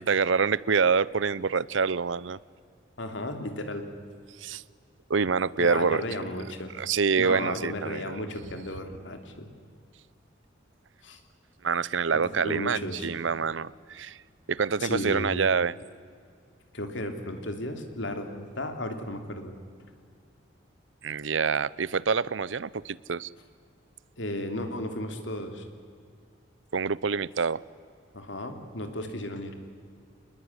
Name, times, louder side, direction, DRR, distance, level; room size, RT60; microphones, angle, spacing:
voice 1, 0.0-2.4 4.4-4.6 5.1-6.0 6.8-8.0 11.6-14.2 14.5-15.7 21.0-23.3 26.7-27.6, right 5 dB, 75° right, 21 dB, 0.7 m, -26 dB
voice 2, 3.0-3.9 5.6-6.7 7.2-9.5 11.0-11.2 12.1-13.1 14.8-15.4 16.7-19.5 19.8-19.9 24.2-25.6 28.1-29.5, left 1 dB, 70° left, 6 dB, 3.2 m, -34 dB
27.0 x 20.5 x 9.8 m, 2.2 s
head